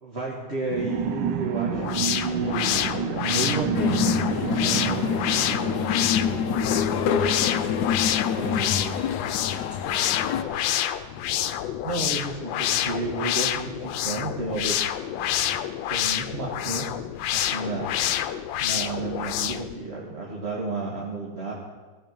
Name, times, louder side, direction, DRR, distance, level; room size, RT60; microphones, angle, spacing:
voice 1, 0.0-4.2 4.5-5.5 8.1-9.0 11.8-14.9 15.9-17.1 17.3-17.9 18.6-21.5, right 2 dB, 35° right, -3 dB, 1.7 m, -32 dB
sound 1, 0.7-8.9, right 10 dB, 80° right, 1.2 m, -31 dB
sound 2, 1.7-19.7, left 11 dB, 90° left, 1.3 m, -28 dB
sound 3, 3.7-10.4, left 8 dB, 70° left, 1.1 m, -27 dB
voice 2, 7.1-10.6 17.4-17.7, left 5 dB, 45° left, 0 dB, 1.1 m, -40 dB
16.0 x 7.8 x 5.3 m, 1.3 s
omnidirectional pair, 2.0 m